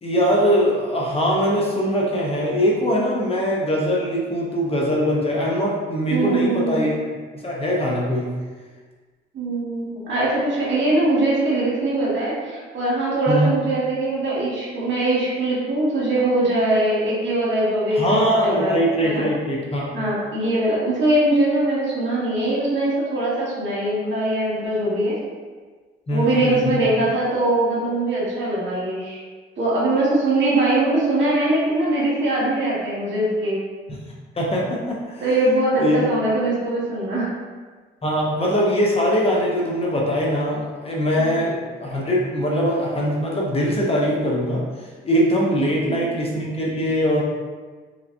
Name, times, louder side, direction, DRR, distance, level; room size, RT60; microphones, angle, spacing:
voice 1, 0.0-6.9 7.4-8.3 13.3-13.5 17.9-19.9 26.1-26.9 33.9-34.0 34.3-35.4 35.7-36.0 38.0-44.6 45.0-47.2, equal, 30° left, -3 dB, 0.7 m, -22 dB
voice 2, 6.1-6.8 9.3-18.8 19.0-19.3 19.9-25.2 26.1-29.2 29.6-33.6 35.2-37.4 41.2-41.4 45.6-46.0, right 2 dB, 65° right, -7 dB, 1.4 m, -22 dB
3.3 x 2.8 x 2.6 m, 1.4 s
cardioid pair, 90°, 20 cm